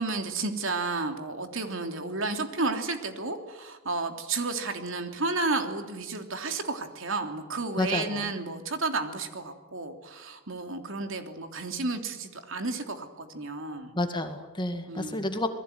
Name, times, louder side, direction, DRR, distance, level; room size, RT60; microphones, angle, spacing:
voice 1, 0.0-13.9 14.9-15.2, right 3 dB, 60° right, 5 dB, 3.2 m, -32 dB
voice 2, 7.8-8.3 13.9-15.5, left 1 dB, 20° left, 7 dB, 2.1 m, -30 dB
28.5 x 21.5 x 9.5 m, 1.1 s
head